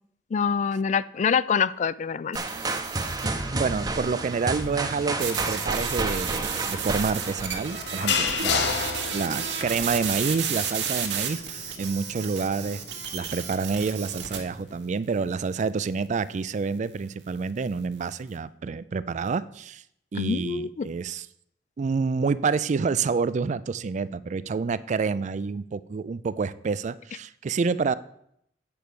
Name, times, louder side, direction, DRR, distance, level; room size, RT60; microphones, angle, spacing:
voice 1, 0.3-2.4 20.2-20.9, left 6 dB, 45° left, 17 dB, 0.3 m, -25 dB
sound 1, 2.3-8.2, right 2 dB, 25° right, 0.7 m, -31 dB
sound 2, 2.3-3.4 5.2-14.4, right 7 dB, 85° right, 1.4 m, -32 dB
voice 2, 3.5-8.8 9.1-12.8 13.1-19.8 20.1-21.3 21.8-27.9, right 5 dB, 45° right, 17 dB, 0.3 m, -28 dB
sound 3, 5.4-14.8, left 5 dB, 85° left, 1.1 m, -33 dB
8.6 x 4.5 x 6.8 m, 0.73 s
head